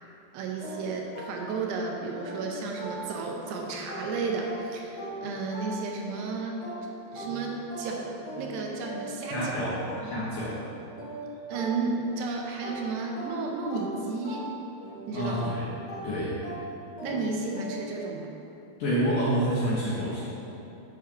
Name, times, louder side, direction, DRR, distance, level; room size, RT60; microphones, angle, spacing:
voice 1, 0.3-6.6 7.1-9.6 10.0-10.1 11.5-14.5 15.1-15.3 17.0-18.3, right 4 dB, 80° right, 0 dB, 2.7 m, -33 dB
sound 1, 0.6-3.5 3.9-12.2 12.6-18.0, right 1 dB, 50° left, 2.1 m, -40 dB
voice 2, 9.3-9.8 10.0-10.6 15.1-15.7 16.0-16.4 18.8-20.2, equal, 70° left, -8 dB, 2.1 m, -28 dB
8.3 x 5.1 x 5.8 m, 2.9 s
omnidirectional pair, 5.0 m